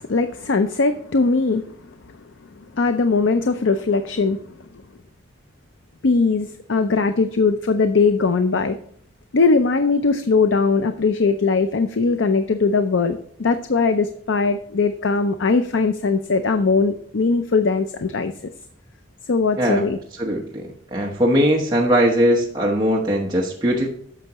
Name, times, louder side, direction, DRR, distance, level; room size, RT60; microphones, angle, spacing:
voice 1, 0.0-1.8 2.6-4.4 6.0-8.8 9.3-18.3 19.3-20.0, left 4 dB, 90° left, 9 dB, 0.5 m, -20 dB
voice 2, 20.2-20.6 20.9-23.9, equal, 25° right, -2 dB, 1.1 m, -19 dB
9.9 x 6.6 x 3.0 m, 0.65 s
head